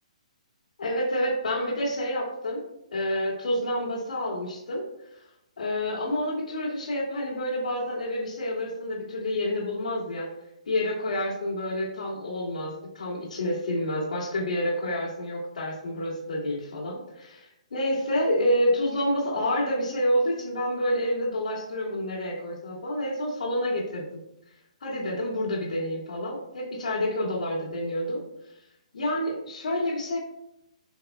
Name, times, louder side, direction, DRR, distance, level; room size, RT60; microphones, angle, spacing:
voice 1, 0.8-2.6 2.9-5.2 5.6-10.3 10.7-24.2 24.8-28.2 28.9-30.2, left 1 dB, 80° left, -6 dB, 2.5 m, -28 dB
11.0 x 5.9 x 2.3 m, 0.82 s
hypercardioid pair, 160°, 4 cm